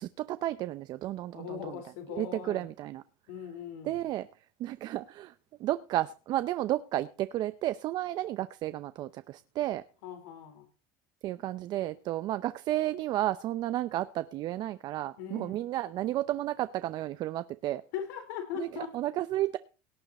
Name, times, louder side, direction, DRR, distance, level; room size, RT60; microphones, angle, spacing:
voice 1, 0.0-1.8 2.1-3.0 3.8-4.3 4.6-5.3 5.6-9.8 11.2-17.8 18.6-19.6, right 14 dB, 50° right, 0.6 m, -32 dB
voice 2, 1.3-2.7 3.3-4.0 10.0-10.7 15.2-15.6 17.9-18.9, left 9 dB, 85° left, 4.3 m, -40 dB
18.0 x 9.2 x 4.2 m
supercardioid pair, 120°, 9 cm